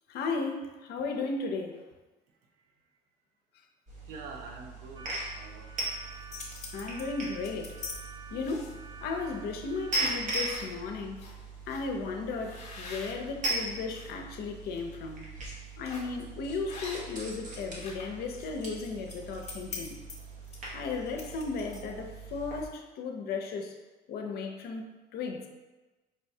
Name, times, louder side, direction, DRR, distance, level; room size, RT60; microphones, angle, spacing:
voice 1, 0.1-1.8 6.7-7.8 8.3-11.3 11.7-15.3 15.8-20.0 20.7-23.7 24.1-25.5, left 4 dB, 70° left, 3 dB, 0.5 m, -35 dB
voice 2, 2.4-2.9 4.0-6.0, right 4 dB, 75° right, 3 dB, 0.6 m, -47 dB
sound 1, 3.9-22.7, right 2 dB, 50° right, 1.0 m, -39 dB
sound 2, 5.0-10.0, right 4 dB, 25° right, 0.3 m, -50 dB
sound 3, 6.0-8.0 8.4-8.9 9.5-9.6 9.9-10.7 11.2-11.3 11.7-11.8 12.4-14.1 14.5-14.8 15.8-16.2 16.7-17.3 17.5-22.0, left 4 dB, 40° left, 0.9 m, -44 dB
5.3 x 2.1 x 2.7 m, 1.2 s
cardioid pair, 110°, 17 cm